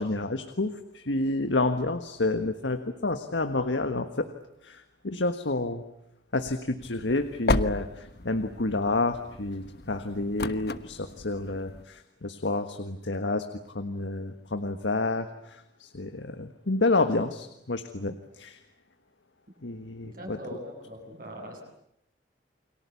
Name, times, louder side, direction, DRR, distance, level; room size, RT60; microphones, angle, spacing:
voice 1, 0.0-4.3 4.6-5.8 6.3-18.6 19.6-20.4, left 2 dB, 85° left, 8 dB, 1.5 m, -29 dB
sound 1, 6.8-11.8, left 2 dB, 60° left, 1.2 m, -33 dB
voice 2, 20.0-21.6, equal, 50° right, 2 dB, 7.9 m, -41 dB
29.5 x 23.5 x 8.4 m, 0.78 s
head